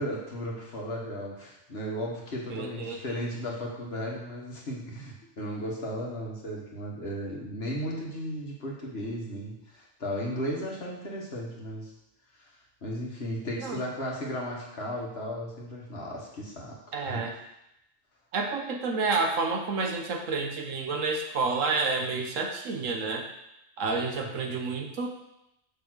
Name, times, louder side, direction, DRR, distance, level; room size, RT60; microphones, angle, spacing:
voice 1, 0.0-11.9 12.8-17.4, equal, 55° left, -3 dB, 1.8 m, -35 dB
voice 2, 2.5-3.2 13.6-13.8 16.9-17.3 18.3-23.3 23.8-25.1, right 4 dB, 80° right, 3 dB, 1.3 m, -29 dB
6.3 x 4.2 x 6.3 m, 0.85 s
omnidirectional pair, 1.3 m